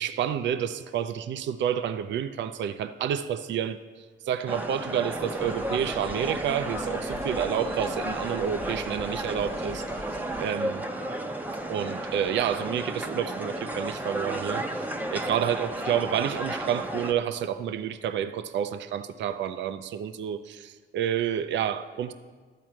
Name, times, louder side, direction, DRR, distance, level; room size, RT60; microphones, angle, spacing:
voice 1, 0.0-9.8 10.4-10.8 11.7-14.7 15.1-22.1, right 9 dB, 65° right, 11 dB, 0.5 m, -29 dB
sound 1, 4.5-17.1, right 1 dB, 10° right, 0.8 m, -33 dB
sound 2, 5.4-10.5, left 2 dB, 35° left, 1.0 m, -43 dB
12.5 x 4.6 x 7.5 m, 1.5 s
cardioid pair, 90°, 20 cm